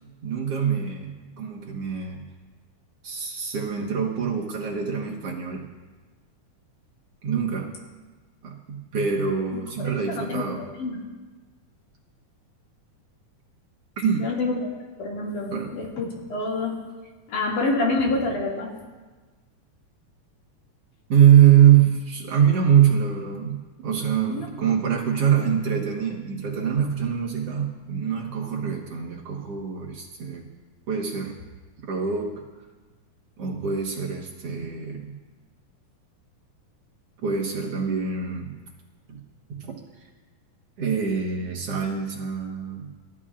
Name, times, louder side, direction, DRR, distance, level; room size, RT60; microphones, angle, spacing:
voice 1, 0.2-2.2 3.0-5.6 7.2-7.7 8.4-10.7 14.0-14.3 15.5-15.7 21.1-30.5 30.9-31.3 31.9-32.4 33.4-35.1 37.2-38.6 39.1-39.2 39.5-39.8 40.8-42.9, right 8 dB, 55° right, -1 dB, 2.1 m, -23 dB
voice 2, 9.8-11.0 14.2-14.7 15.0-16.8 17.3-18.7 24.3-24.5, left 3 dB, 75° left, -2 dB, 3.8 m, -27 dB
28.0 x 13.5 x 2.5 m, 1.3 s
omnidirectional pair, 3.6 m